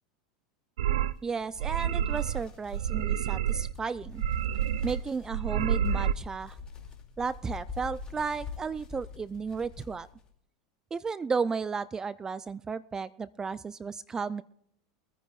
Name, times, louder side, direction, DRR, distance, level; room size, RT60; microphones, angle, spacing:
sound 1, 0.8-1.1 1.6-2.4 2.7-3.7 4.0-5.0 5.3-6.1, right 10 dB, 80° right, 0.5 m, -29 dB
sound 2, 1.0-10.3, left 5 dB, 25° left, 2.5 m, -43 dB
voice 1, 1.2-4.2 4.8-6.6 7.2-10.1 10.9-14.4, right 5 dB, 20° right, 18 dB, 0.4 m, -33 dB
23.5 x 9.8 x 2.4 m, 0.70 s
hypercardioid pair, 100°, 3 cm